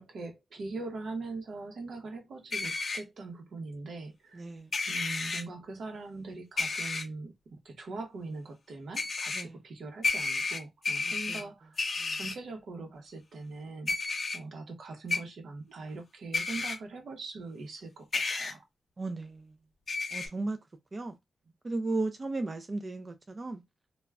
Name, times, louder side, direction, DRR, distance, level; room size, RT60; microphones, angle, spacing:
voice 1, 0.0-4.5 4.9-11.8 12.2-13.9 14.3-18.6, right 3 dB, 75° right, 0.7 m, -42 dB
sound 1, 2.5-3.0 4.7-5.4 6.6-7.0 9.0-9.4 10.0-11.4 11.8-12.3 13.9-14.4 15.1-15.2 16.3-16.8 18.1-18.5 19.9-20.3, left 3 dB, 45° left, 0.5 m, -31 dB
voice 2, 4.3-4.7 9.3-9.6 11.0-11.4 12.0-12.2 19.0-19.5 20.1-20.6 20.9-21.2 21.6-23.6, right 2 dB, 30° right, 0.3 m, -35 dB
2.4 x 2.1 x 3.3 m
wide cardioid pair, 135°, 0 cm